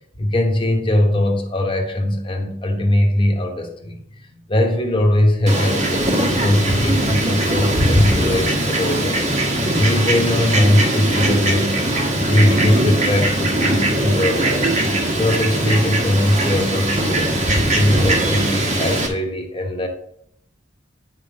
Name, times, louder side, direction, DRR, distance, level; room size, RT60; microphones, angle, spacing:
voice 1, 0.2-4.0 4.3-9.2 9.5-11.8 12.3-14.8 15.1-19.9, left 1 dB, 25° left, 2 dB, 1.1 m, -20 dB
Fowl, 5.5-19.1, right 1 dB, 40° right, 1.3 m, -20 dB
9.3 x 3.6 x 5.0 m, 0.68 s
head